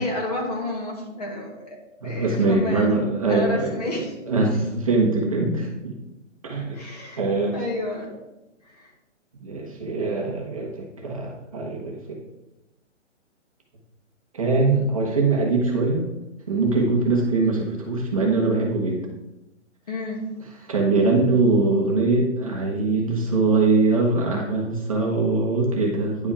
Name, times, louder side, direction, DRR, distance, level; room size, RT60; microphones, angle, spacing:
voice 1, 0.0-1.8 2.0-3.0 3.3-4.2 6.7-7.2 7.5-8.1 8.6-8.9 19.9-20.2, left 2 dB, 30° left, 0 dB, 1.9 m, -30 dB
voice 2, 2.0-3.7 4.3-5.9 6.4-6.8 7.2-7.6 9.4-12.2 14.3-16.1 16.5-19.0 20.7-26.3, right 3 dB, 30° right, -1 dB, 1.0 m, -22 dB
9.9 x 5.2 x 4.8 m, 0.97 s
hypercardioid pair, 180°, 37 cm